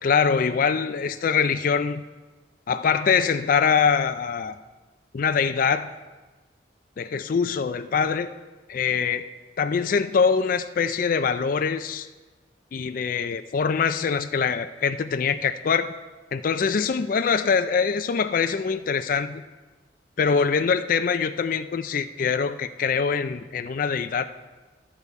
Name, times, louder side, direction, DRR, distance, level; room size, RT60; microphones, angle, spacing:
voice 1, 0.0-2.0 2.7-4.6 5.1-5.9 7.0-8.3 8.7-9.2 9.6-12.1 12.7-15.9 16.3-19.4 20.2-24.3, left 6 dB, 50° left, 10 dB, 0.4 m, -23 dB
13.0 x 6.8 x 4.7 m, 1.2 s
head